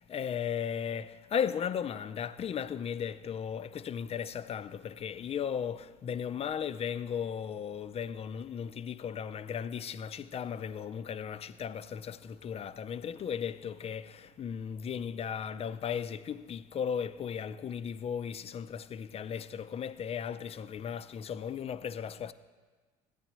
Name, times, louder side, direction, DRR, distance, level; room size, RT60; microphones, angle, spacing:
voice 1, 0.0-22.3, left 8 dB, 35° left, 0.4 m, -36 dB
14.0 x 9.0 x 3.0 m
supercardioid pair, 80°, 18 cm